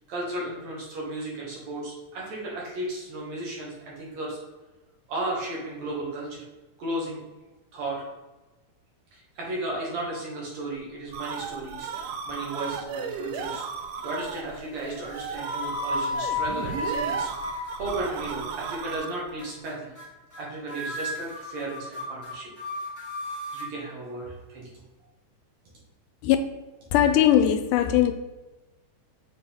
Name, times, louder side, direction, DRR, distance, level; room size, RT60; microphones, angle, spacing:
voice 1, 0.0-4.4 5.1-6.4 6.8-7.2 7.7-8.0 9.1-13.6 14.0-17.3 17.8-19.9 20.4-22.5 23.5-24.7, right 2 dB, 60° right, 2.8 m, -34 dB
sound 1, 10.8-19.3, right 6 dB, 85° right, 2.2 m, -35 dB
sound 2, 12.8-13.4 13.8-14.3 15.0-18.3 18.6-19.0 19.4-19.7 20.0-20.1 20.3-20.4 20.7-23.7, left 1 dB, 15° left, 0.7 m, -33 dB
voice 2, 26.9-28.1, left 11 dB, 80° left, 2.0 m, -19 dB
7.2 x 4.1 x 3.5 m
omnidirectional pair, 3.7 m